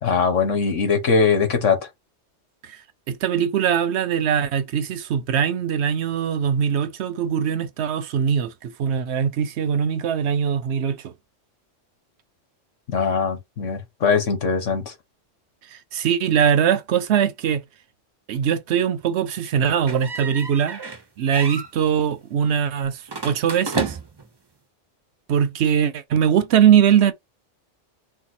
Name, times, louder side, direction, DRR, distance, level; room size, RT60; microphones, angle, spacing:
voice 1, 0.0-1.8 12.9-14.9, left 5 dB, 80° left, 1.6 m, -21 dB
voice 2, 3.1-11.1 15.7-17.6 18.3-20.8 21.2-24.0 25.3-27.1, right 8 dB, 65° right, 0.8 m, -21 dB
sound 1, 19.9-21.0 21.3-21.7 23.1-24.3, right 3 dB, 30° right, 0.5 m, -31 dB
4.3 x 2.2 x 4.2 m
omnidirectional pair, 1.3 m